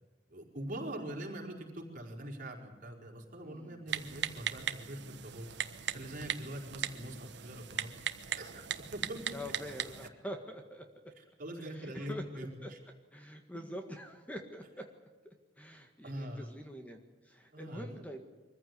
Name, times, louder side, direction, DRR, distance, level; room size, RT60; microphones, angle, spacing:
voice 1, 0.3-5.5 5.9-7.9 8.3-8.6 8.9-9.4 11.2-12.8 16.0-16.5 17.5-18.1, right 1 dB, 50° right, 0 dB, 4.9 m, -43 dB
voice 2, 3.4-3.8 9.3-10.9 11.7-12.7 13.1-14.9 15.2-18.3, equal, 10° left, 4 dB, 1.7 m, -45 dB
Typing, 3.9-10.1, right 8 dB, 80° right, 1.3 m, -39 dB
24.5 x 15.0 x 9.5 m, 1.3 s
head